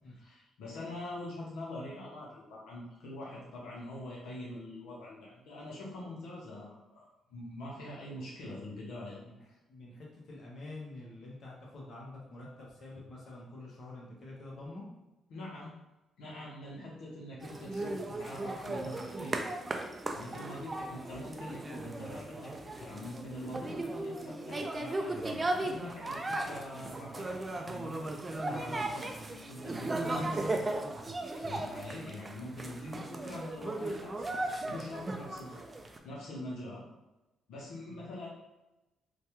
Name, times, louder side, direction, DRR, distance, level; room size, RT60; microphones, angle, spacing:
voice 1, 0.0-9.2 15.3-15.7 16.2-19.5 20.1-25.2 25.6-30.5 31.4-35.6 36.0-36.8 37.5-38.3, left 1 dB, 85° left, -5 dB, 0.7 m, -44 dB
voice 2, 9.7-14.8 20.5-20.7 37.9-38.0, left 2 dB, 45° left, -3 dB, 0.9 m, -47 dB
sound 1, 17.4-36.0, right 2 dB, 25° right, 0.3 m, -37 dB
3.2 x 2.2 x 2.9 m, 0.99 s
cardioid pair, 90°, 0 cm